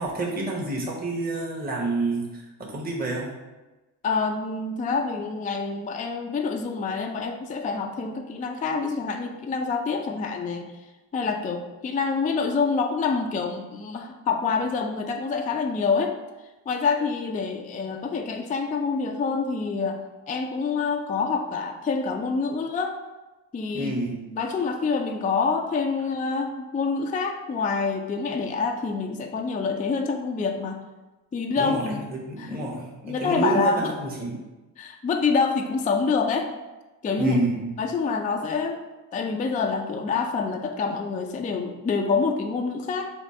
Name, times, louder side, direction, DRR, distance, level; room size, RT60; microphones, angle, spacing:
voice 1, 0.0-3.3 23.7-24.2 31.6-34.4 37.2-37.7, right 2 dB, 20° right, -3 dB, 0.9 m, -28 dB
voice 2, 4.0-10.7 11.1-16.1 16.7-23.0 23.5-23.9 24.3-30.8 31.3-32.0 32.4-32.6 33.0-33.9 34.8-36.5 37.0-37.4 37.8-38.8 39.1-43.1, left 4 dB, 20° left, 4 dB, 0.3 m, -26 dB
3.4 x 2.4 x 4.2 m, 1.1 s
hypercardioid pair, 40°, 49 cm